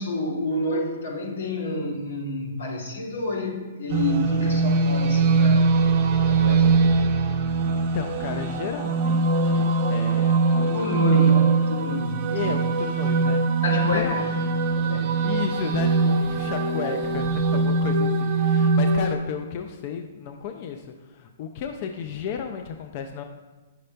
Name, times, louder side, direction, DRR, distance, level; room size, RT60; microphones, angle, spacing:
voice 1, 0.0-5.8 6.3-6.8 10.6-12.4 13.6-14.3 14.8-15.2, left 2 dB, 90° left, -2 dB, 2.3 m, -29 dB
sound 1, 3.9-19.1, right 3 dB, 30° right, 0.6 m, -22 dB
voice 2, 7.3-10.4 11.1-11.4 12.3-13.4 13.8-14.6 15.2-23.2, left 7 dB, 35° left, 5 dB, 0.4 m, -33 dB
9.4 x 6.5 x 2.2 m, 1.2 s
hypercardioid pair, 170°, 0 cm